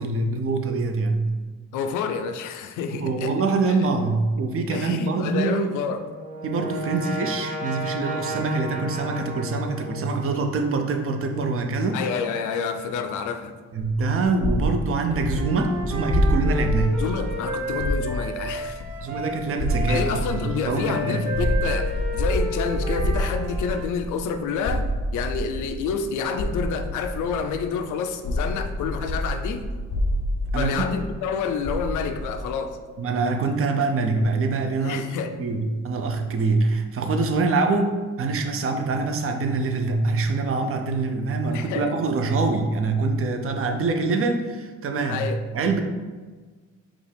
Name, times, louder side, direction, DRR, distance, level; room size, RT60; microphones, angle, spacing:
voice 1, 0.0-1.3 2.9-5.8 6.4-12.0 13.7-17.0 19.0-21.4 30.5-30.8 33.0-35.1 35.4-45.3 45.5-45.8, right 3 dB, 45° right, 5 dB, 0.6 m, -24 dB
voice 2, 1.7-3.3 4.7-6.0 11.9-13.5 17.0-18.8 19.9-29.6 30.6-32.8 34.8-35.3 41.5-41.9 45.1-45.4, left 6 dB, 80° left, 8 dB, 0.5 m, -28 dB
Brass instrument, 5.7-10.5, equal, 25° right, 0.9 m, -33 dB
sound 1, 13.8-27.8 28.2-32.5, left 1 dB, 25° left, 0.4 m, -28 dB
Wind instrument woodwind instrument, 15.3-23.9, right 1 dB, 65° right, 1.0 m, -32 dB
5.1 x 2.4 x 3.3 m, 1.4 s
cardioid pair, 90°, 30 cm